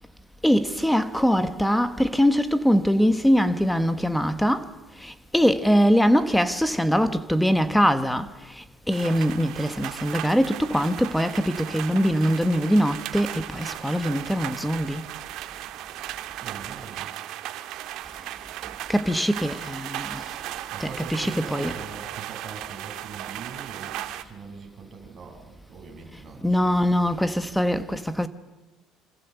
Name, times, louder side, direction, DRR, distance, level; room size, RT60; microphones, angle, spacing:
voice 1, 0.4-4.7 5.0-8.3 8.9-15.0 18.9-20.2 20.8-21.8 26.4-28.3, equal, ahead, 1.1 m, -22 dB
sound 1, 8.9-24.2, right 13 dB, 65° right, 1.7 m, -36 dB
voice 2, 16.4-17.1 20.7-27.5, right 5 dB, 25° right, 6.8 m, -42 dB
27.5 x 26.5 x 8.1 m
cardioid pair, 150°, 0 cm